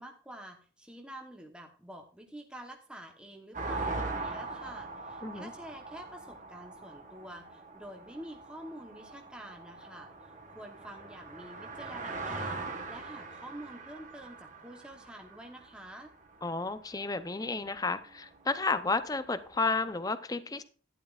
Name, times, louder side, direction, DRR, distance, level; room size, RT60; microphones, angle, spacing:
voice 1, 0.0-16.1, right 1 dB, 5° right, 0.9 m, -48 dB
sound 1, 3.5-16.6 17.4-17.5 17.7-19.9, right 3 dB, 40° right, 1.3 m, -41 dB
voice 2, 16.4-20.6, left 3 dB, 20° left, 0.5 m, -32 dB
12.0 x 11.0 x 2.4 m
head